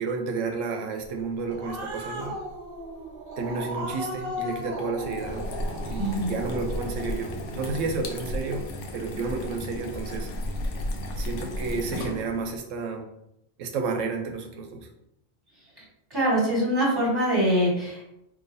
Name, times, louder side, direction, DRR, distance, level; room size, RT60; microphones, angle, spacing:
voice 1, 0.0-2.4 3.4-5.5 5.8-8.7 8.9-10.3 11.2-13.1 13.6-14.9, right 4 dB, 85° right, 3 dB, 1.0 m, -31 dB
Growling, 1.2-8.0, equal, 50° right, 0.9 m, -37 dB
sound 1, 5.0-12.6, left 1 dB, 75° left, 0.9 m, -34 dB
voice 2, 6.0-6.3 16.1-18.0, equal, 20° right, -5 dB, 1.3 m, -23 dB
3.9 x 2.8 x 2.6 m, 0.82 s
omnidirectional pair, 1.3 m